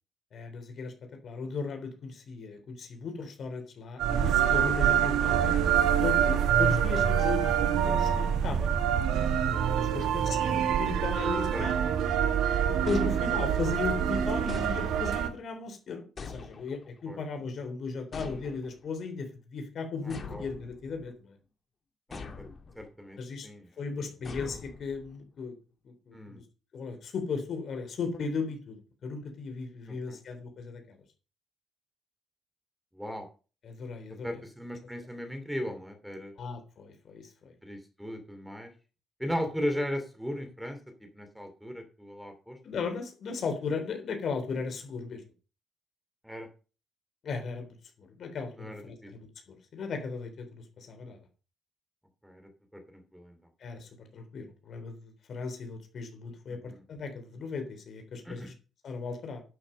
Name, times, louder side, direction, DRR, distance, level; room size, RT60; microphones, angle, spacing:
voice 1, 0.3-0.9 1.2-5.5 6.0-8.7 9.8-11.8 12.7-21.3 23.2-23.5 23.8-25.5 25.8-26.4 26.7-28.8 29.0-31.0 33.6-34.4 36.4-37.5 42.6-45.2 47.2-51.2 53.6-58.5 58.8-59.4, left 4 dB, 60° left, 5 dB, 3.5 m, -36 dB
sound 1, 4.0-15.3, right 9 dB, 85° right, 1.4 m, -26 dB
voice 2, 9.9-10.3 11.5-11.7 17.1-17.2 20.0-20.4 22.1-22.5 22.7-23.7 26.1-26.4 29.9-30.2 32.9-33.3 34.1-36.3 37.6-38.7 39.2-42.6 46.2-46.5 48.6-49.1 52.2-53.4 56.5-56.8 58.2-58.5, equal, ahead, 6 dB, 2.9 m, -38 dB
sound 2, 12.9-13.7 14.5-15.3 16.2-17.0 18.1-18.9 20.1-21.1 22.1-22.9 24.2-25.2, left 4 dB, 40° left, 2.4 m, -43 dB
11.5 x 6.3 x 5.3 m, 0.35 s
cardioid pair, 90°, 0 cm